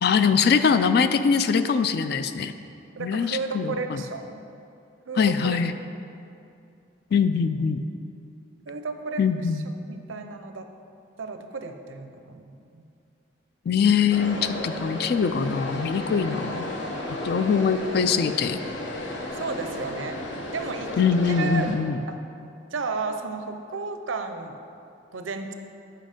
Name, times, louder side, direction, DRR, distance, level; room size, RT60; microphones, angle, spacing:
voice 1, 0.0-2.5 3.0-4.0 5.2-5.7 7.1-7.8 9.2-9.7 13.7-16.7 17.2-18.6 21.0-22.0, left 6 dB, 50° left, 11 dB, 0.3 m, -22 dB
voice 2, 3.0-4.4 5.1-5.6 8.7-9.2 9.9-10.7 11.2-12.8 19.4-20.2 20.5-20.9 21.3-21.7 22.1-22.2 22.7-24.6 25.1-25.5, right 4 dB, 80° right, 7 dB, 0.6 m, -33 dB
sound 1, 14.1-21.8, left 1 dB, 70° left, 0.9 m, -33 dB
7.5 x 5.6 x 5.1 m, 2.6 s
head